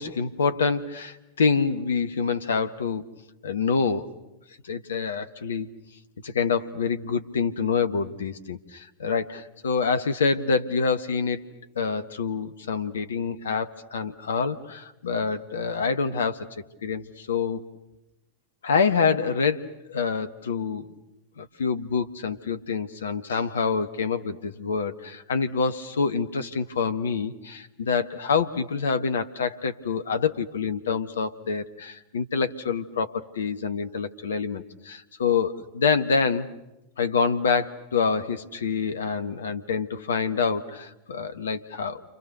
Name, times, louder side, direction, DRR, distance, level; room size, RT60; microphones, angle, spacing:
voice 1, 0.0-3.1 3.4-4.1 4.6-5.7 6.2-11.4 11.8-16.5 16.8-17.6 18.6-20.9 21.4-36.5 37.0-42.0, left 5 dB, 65° left, 10 dB, 1.1 m, -26 dB
29.5 x 27.0 x 6.7 m, 0.96 s
figure-of-eight pair, 90°, 0 cm